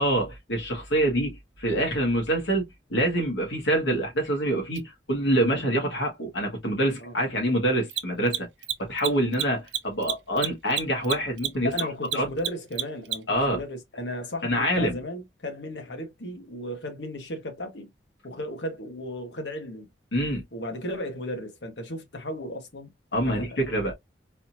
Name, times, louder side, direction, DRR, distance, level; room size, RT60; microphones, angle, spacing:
voice 1, 0.0-2.6 2.9-8.5 8.8-11.7 12.1-12.3 13.3-13.6 14.4-15.0 20.1-20.4 23.1-23.9, right 1 dB, 85° left, 1.9 m, -25 dB
Mechanisms, 4.7-4.8 7.8-13.4, right 11 dB, 65° right, 0.6 m, -30 dB
voice 2, 11.6-17.9 18.2-19.9 20.5-22.9 23.2-23.7, left 1 dB, 70° left, 1.4 m, -35 dB
4.1 x 2.8 x 2.8 m
head